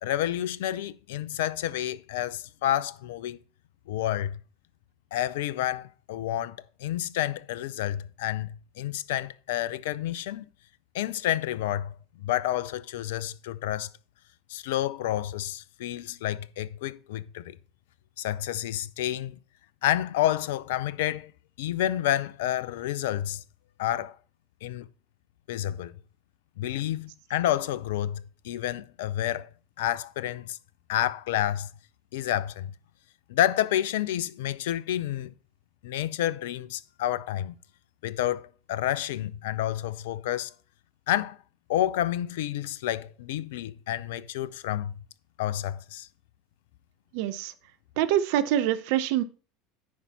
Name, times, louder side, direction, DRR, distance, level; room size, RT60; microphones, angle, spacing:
voice 1, 0.0-3.4 3.9-4.4 5.1-10.4 10.9-11.9 12.2-13.9 14.5-17.6 18.2-19.4 19.8-21.3 21.6-23.4 23.8-24.1 24.6-24.8 25.5-26.0 26.6-29.5 29.8-30.6 30.9-31.7 32.1-32.7 33.3-35.3 35.8-37.6 38.0-40.5 41.1-41.4 41.7-44.9 45.4-46.1, left 12 dB, 70° left, 0.6 m, -29 dB
voice 2, 47.1-47.5 48.0-49.2, right 11 dB, 65° right, 0.7 m, -25 dB
9.5 x 5.7 x 4.2 m
hypercardioid pair, 75°, 0 cm